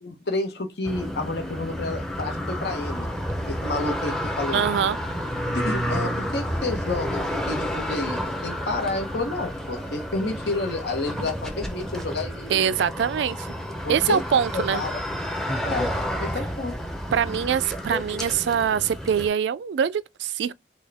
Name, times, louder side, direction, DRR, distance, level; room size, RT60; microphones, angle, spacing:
voice 1, 0.0-3.1 3.5-4.6 5.5-12.6 13.8-14.2 14.5-15.0 15.6-15.9 16.2-16.8, left 2 dB, 70° left, 1.1 m, -30 dB
sound 1, 0.8-19.3, equal, 5° left, 0.6 m, -30 dB
voice 2, 4.5-5.0 12.5-13.5 13.9-14.8 17.1-20.5, right 8 dB, 80° right, 0.3 m, -23 dB
6.2 x 2.3 x 3.4 m
head